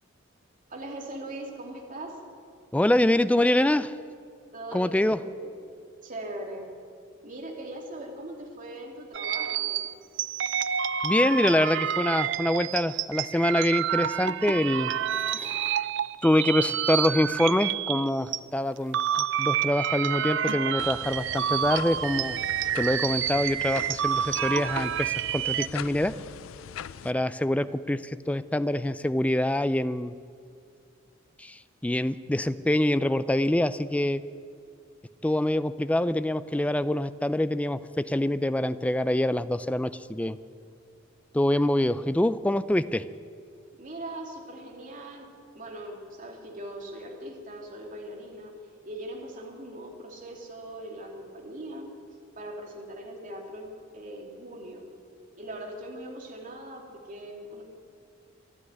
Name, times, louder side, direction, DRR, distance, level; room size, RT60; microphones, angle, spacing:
voice 1, 0.7-2.2 4.5-5.5 6.0-6.7 7.2-9.8 43.8-45.3 45.5-48.5 48.9-51.9 52.4-54.8 55.4-57.6, right 1 dB, 40° right, 0 dB, 2.6 m, -40 dB
voice 2, 2.7-3.9 4.7-5.2 11.0-14.9 15.3-15.9 16.2-22.4 22.7-26.1 27.0-30.1 31.4-34.2 35.2-40.4 41.3-43.0, left 1 dB, 5° left, 13 dB, 0.4 m, -25 dB
sound 1, 9.1-18.4 18.8-25.7, right 9 dB, 60° right, 0.5 m, -29 dB
sound 2, 20.8-27.1, left 8 dB, 80° left, 0.4 m, -42 dB
13.0 x 11.0 x 9.4 m, 2.2 s
head